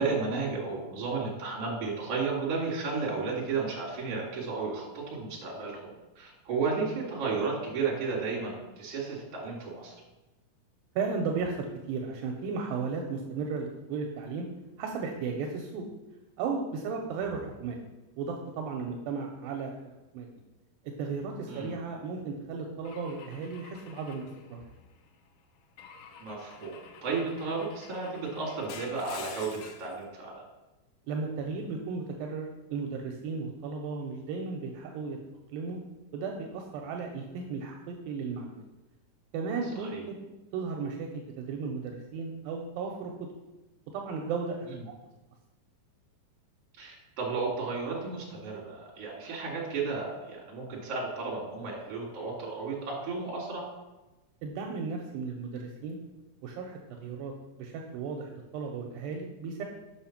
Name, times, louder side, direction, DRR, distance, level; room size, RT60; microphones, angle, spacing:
voice 1, 0.0-5.9 6.2-9.9 21.5-21.8 26.2-30.4 39.7-40.0 44.7-44.8 46.8-53.7, right 4 dB, 45° right, -4 dB, 2.8 m, -33 dB
voice 2, 11.0-11.6 11.9-14.5 14.8-15.8 16.4-17.8 18.2-19.8 20.1-20.3 21.0-24.6 31.1-35.2 35.5-35.8 36.1-38.6 39.3-43.1 43.9-44.7 54.4-56.0 56.4-56.7 57.0-59.6, right 5 dB, 80° right, 2 dB, 2.4 m, -35 dB
Car / Engine / Glass, 22.9-25.1 25.8-30.0, left 6 dB, 75° left, 2.4 m, -48 dB
6.4 x 5.5 x 5.8 m, 1.1 s
omnidirectional pair, 4.2 m